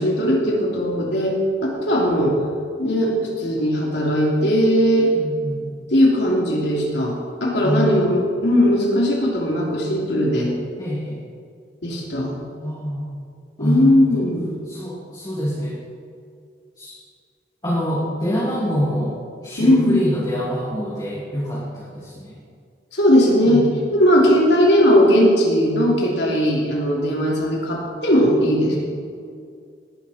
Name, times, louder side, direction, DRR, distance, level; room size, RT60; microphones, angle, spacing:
voice 1, 0.0-1.3 1.7-2.4 2.8-5.1 5.9-10.5 11.8-12.3 13.6-14.5 18.5-18.8 19.6-20.0 22.9-28.8, equal, 75° left, -3 dB, 3.2 m, -18 dB
voice 2, 5.1-5.8 7.6-8.1 10.8-11.2 12.6-13.1 13.6-14.3 14.7-15.8 16.8-17.0 17.6-19.1 19.4-22.4 23.4-23.6 28.7-28.8, equal, 20° left, -8 dB, 2.8 m, -25 dB
18.0 x 11.0 x 4.4 m, 2.3 s
head